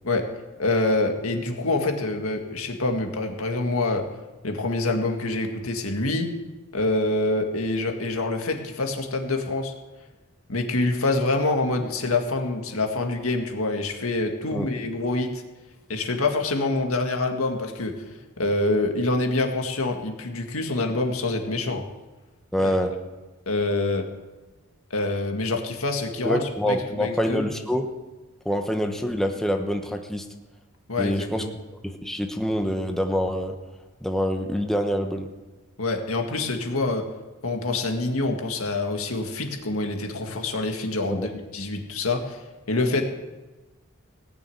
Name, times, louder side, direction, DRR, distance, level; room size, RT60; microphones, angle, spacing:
voice 1, 0.6-4.0 4.4-6.3 6.7-9.7 10.5-15.4 15.9-21.8 22.6-22.7 23.5-24.1 24.9-26.4 26.7-27.5 30.9-31.5 35.8-37.1 37.4-42.4 42.7-43.0, left 2 dB, 75° left, 3 dB, 2.0 m, -26 dB
voice 2, 22.5-22.9 26.2-27.9 28.4-30.3 31.0-31.4 31.8-33.6 34.0-35.3 41.1-41.3, equal, ahead, 4 dB, 1.0 m, -26 dB
18.0 x 6.9 x 9.3 m, 1.2 s
head